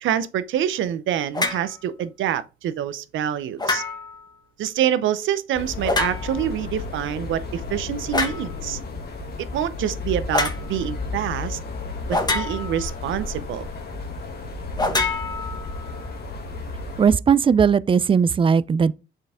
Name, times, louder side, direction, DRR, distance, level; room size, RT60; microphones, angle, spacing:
voice 1, 0.0-3.8 4.6-8.8 9.4-11.6 12.1-13.7, right 10 dB, 75° right, 0.7 m, -26 dB
sound 1, 1.3-1.7 3.6-4.2 5.8-6.5 8.1-8.5 10.3-10.6 12.1-12.9 14.8-15.9, left 3 dB, 20° left, 1.3 m, -25 dB
sound 2, 5.5-17.1, left 3 dB, 55° left, 1.9 m, -33 dB
voice 2, 17.0-18.9, right 6 dB, 25° right, 0.4 m, -18 dB
7.7 x 4.6 x 3.6 m
cardioid pair, 90°, 20 cm